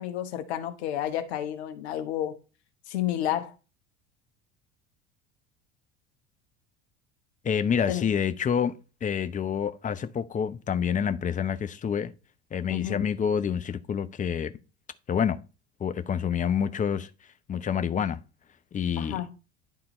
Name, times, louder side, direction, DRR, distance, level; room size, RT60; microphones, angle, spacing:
voice 1, 0.0-2.4 2.9-3.5 7.9-8.1 12.7-13.1 19.0-19.3, left 11 dB, 65° left, 1.1 m, -31 dB
voice 2, 7.4-8.7 9.0-12.1 12.5-14.5 15.1-15.4 15.8-17.1 17.5-18.2 18.7-19.2, left 7 dB, 20° left, 0.8 m, -27 dB
11.0 x 3.9 x 4.3 m
figure-of-eight pair, 70°, 34 cm